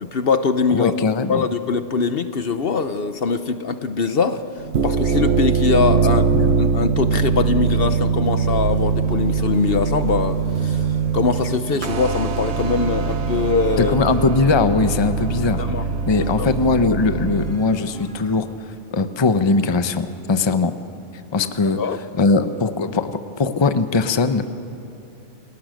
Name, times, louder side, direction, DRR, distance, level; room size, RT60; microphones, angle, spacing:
voice 1, 0.0-4.4 4.8-6.3 6.6-10.8 11.1-14.0 15.6-15.8 16.2-16.5 21.4-22.0, left 5 dB, 55° left, 10 dB, 1.0 m, -22 dB
voice 2, 0.7-1.5 6.3-6.5 13.8-15.6 16.1-18.5 18.9-20.7 21.3-21.8 22.2-24.5, left 3 dB, 25° left, 10 dB, 0.8 m, -20 dB
sound 1, 4.6-17.5, right 5 dB, 70° right, 1.2 m, -22 dB
sound 2, 8.2-18.4, equal, 5° left, 3.9 m, -41 dB
28.5 x 18.5 x 6.4 m, 2.9 s
omnidirectional pair, 1.2 m